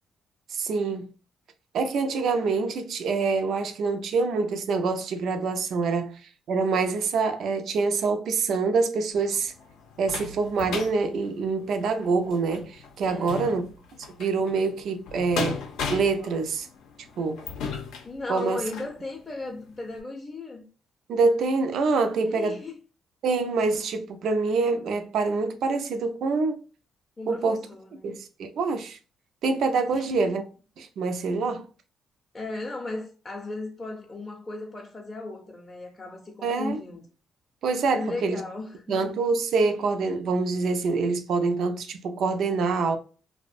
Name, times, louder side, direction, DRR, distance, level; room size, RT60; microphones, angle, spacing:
voice 1, 0.5-1.1 1.7-6.2 6.5-9.5 10.0-13.7 14.2-15.6 15.9-16.7 17.2-17.4 18.3-18.6 21.1-22.6 23.2-26.6 27.3-27.6 28.0-29.0 29.4-30.4 30.8-31.7 36.4-36.8 37.6-38.4 38.9-43.0, right 4 dB, 70° right, 0.4 m, -25 dB
sound 1, 9.1-19.0 19.5-19.6 20.0-20.1, left 5 dB, 85° left, 0.5 m, -37 dB
voice 2, 13.1-13.5 18.0-20.6 22.2-22.7 27.2-28.2 29.9-30.2 32.3-37.0 37.9-38.8, left 2 dB, 25° left, 0.5 m, -36 dB
2.4 x 2.1 x 2.5 m
cardioid pair, 90°, 0 cm